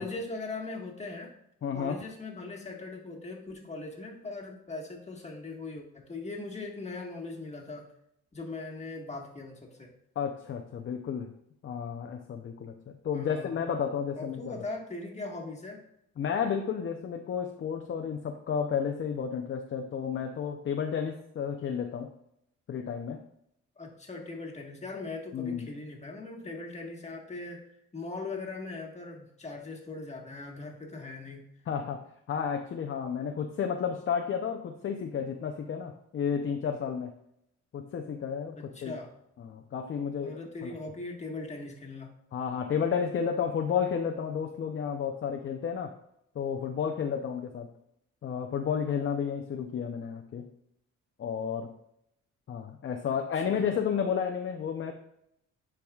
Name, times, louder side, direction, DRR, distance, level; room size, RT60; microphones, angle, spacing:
voice 1, 0.0-1.3 1.7-7.9 8.3-9.9 13.1-13.5 14.2-15.8 23.8-31.5 38.6-39.1 40.2-42.1 53.0-53.2 53.5-53.7, left 3 dB, 25° left, 1 dB, 1.5 m, -40 dB
voice 2, 1.6-2.0 10.2-11.3 11.6-12.7 13.0-14.6 16.2-22.1 22.7-23.2 25.3-25.7 31.7-32.0 32.3-37.1 37.7-39.0 39.4-40.7 42.3-45.9 46.3-47.7 48.2-50.5 51.2-51.7 52.5-54.9, left 7 dB, 45° left, 4 dB, 0.6 m, -32 dB
10.5 x 4.8 x 2.4 m, 0.75 s
cardioid pair, 115°, 29 cm